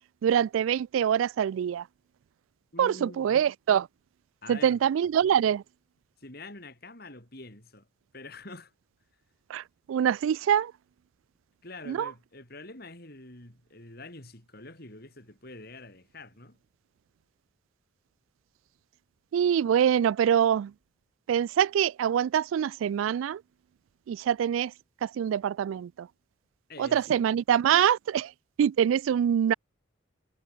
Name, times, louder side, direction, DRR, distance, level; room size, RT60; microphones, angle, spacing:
voice 1, 0.2-1.9 2.8-3.9 4.5-5.6 9.5-10.7 11.9-12.1 19.3-20.7 21.3-23.4 24.1-24.7 25.0-26.1 26.8-28.3 28.6-29.5, right 9 dB, 85° right, 0.3 m, -25 dB
voice 2, 2.7-3.4 4.4-4.8 6.2-7.9 8.1-8.7 11.6-16.6 26.7-27.2, left 2 dB, 50° left, 5.1 m, -46 dB
head